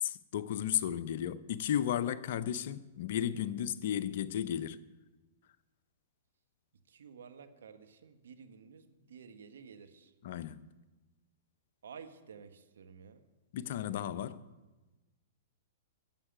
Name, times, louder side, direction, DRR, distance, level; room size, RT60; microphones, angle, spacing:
voice 1, 0.0-4.8 10.2-10.6 13.5-14.4, left 10 dB, 60° left, 0.6 m, -34 dB
voice 2, 6.9-10.1 11.8-13.2, right 6 dB, 75° right, 1.3 m, -52 dB
12.0 x 7.5 x 8.8 m
hypercardioid pair, 115°, 0 cm